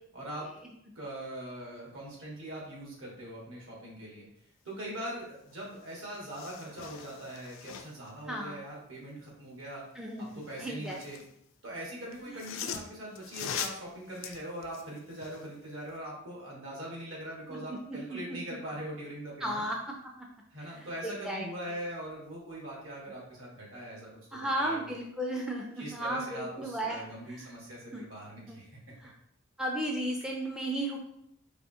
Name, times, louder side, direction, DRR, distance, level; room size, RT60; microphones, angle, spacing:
voice 1, 0.1-0.5 0.9-4.3 4.6-9.8 10.2-11.2 11.6-19.6 20.5-24.9 25.8-28.8, right 1 dB, 75° right, -3 dB, 1.4 m, -42 dB
sound 1, 5.5-5.6 5.9-8.1 10.2-11.3 12.1-15.5 15.9-16.0, left 8 dB, 70° left, 0.4 m, -42 dB
voice 2, 8.3-8.6 10.0-11.0 12.3-12.4 17.5-18.4 19.4-19.8 20.7-21.5 24.3-27.5 27.9-28.0 28.5-28.6 29.0-29.1 29.6-31.0, right 1 dB, 5° right, -1 dB, 0.3 m, -35 dB
4.7 x 2.7 x 2.6 m, 0.74 s
head